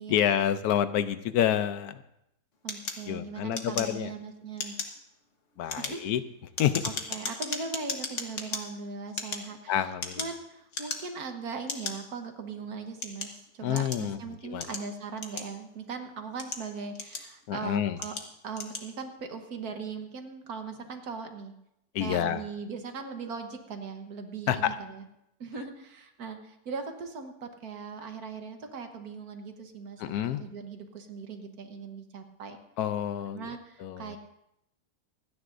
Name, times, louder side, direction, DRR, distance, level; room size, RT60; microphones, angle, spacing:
voice 1, 0.1-2.0 3.1-4.1 5.6-6.2 6.6-6.8 9.7-10.2 13.6-14.2 14.4-14.7 17.5-18.0 21.9-22.4 24.5-24.8 30.0-30.4 32.8-33.5 33.8-34.2, left 10 dB, 90° left, 12 dB, 1.2 m, -28 dB
voice 2, 2.6-4.8 5.8-6.0 6.8-9.9 10.2-18.2 18.4-21.5 22.0-25.0 25.4-32.6 33.3-34.2, right 5 dB, 85° right, 5 dB, 1.7 m, -39 dB
sound 1, 2.7-4.2 4.5-5.0 5.5-8.6 9.1-10.4 10.7-11.2 11.7-11.9 12.6-14.1 14.6-15.8 16.2-17.5 18.0-18.3 18.5-18.9, left 4 dB, 55° left, 1.5 m, -36 dB
26.0 x 9.7 x 2.6 m, 0.81 s
omnidirectional pair, 1.6 m